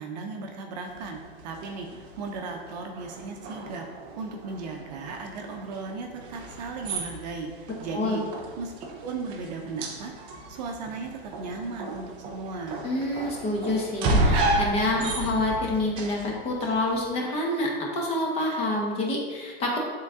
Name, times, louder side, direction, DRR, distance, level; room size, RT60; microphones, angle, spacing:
voice 1, 0.0-3.8 4.2-8.2 8.6-8.7 9.0-10.1 10.5-12.8, right 4 dB, 40° right, 2 dB, 0.8 m, -36 dB
sound 1, 0.9-17.1, right 2 dB, 15° right, 0.4 m, -33 dB
voice 2, 12.8-19.8, left 1 dB, 20° left, -2 dB, 1.0 m, -27 dB
7.2 x 3.8 x 3.6 m, 1.4 s
hypercardioid pair, 155°, 31 cm